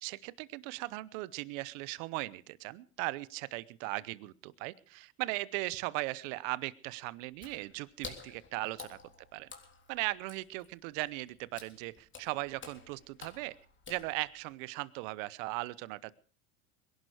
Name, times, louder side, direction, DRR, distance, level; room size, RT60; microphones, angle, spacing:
voice 1, 0.0-9.0 9.3-9.5 9.9-13.6 13.9-16.1, right 21 dB, 70° right, 19 dB, 0.9 m, -38 dB
Water / Splash splatter, 7.4-14.5, left 5 dB, 30° left, 3.5 m, -51 dB
22.0 x 11.5 x 4.9 m, 0.43 s
supercardioid pair, 95°, 39 cm